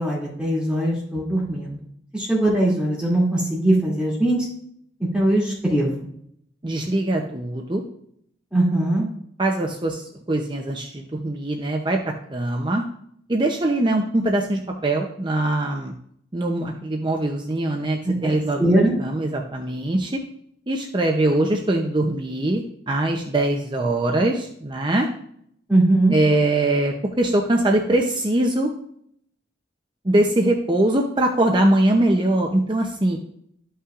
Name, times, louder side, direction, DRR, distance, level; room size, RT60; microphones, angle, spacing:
voice 1, 0.0-1.8 2.1-4.5 5.1-5.9 8.5-9.1 18.0-19.0 25.7-26.1, right 1 dB, 5° right, -6 dB, 2.5 m, -20 dB
voice 2, 6.6-7.8 9.4-12.8 13.3-15.9 16.3-18.6 19.0-20.2 20.7-25.1 26.1-28.7 30.0-33.2, right 1 dB, 25° right, 2 dB, 0.6 m, -22 dB
12.5 x 5.6 x 2.5 m, 0.69 s
head